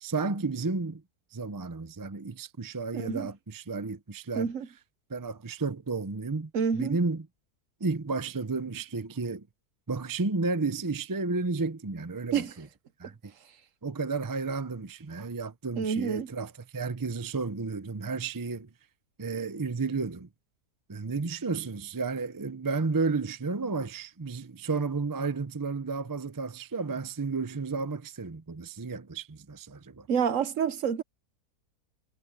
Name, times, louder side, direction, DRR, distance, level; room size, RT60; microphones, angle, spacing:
voice 1, 0.0-1.0 1.3-4.5 5.1-7.3 7.8-9.5 9.9-12.7 13.0-13.3 13.8-18.7 19.2-20.3 20.9-30.1, right 4 dB, 25° right, 0.4 m, -32 dB
voice 2, 2.9-3.3 4.3-4.7 6.5-7.0 12.3-12.5 15.8-16.3 30.1-31.0, right 7 dB, 60° right, 1.1 m, -28 dB
omnidirectional pair, 1.7 m